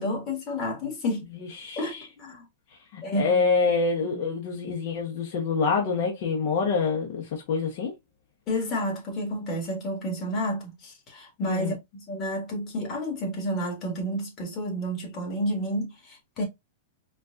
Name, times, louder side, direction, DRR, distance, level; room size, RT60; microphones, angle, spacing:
voice 1, 0.0-1.3 1.8-2.4 3.0-3.4 8.5-11.7 12.1-16.4, equal, 25° left, 1.9 m, -30 dB
voice 2, 1.3-2.0 2.9-7.9 11.4-11.7, left 4 dB, 50° left, 1.1 m, -26 dB
4.4 x 2.5 x 2.7 m
supercardioid pair, 155°, 0 cm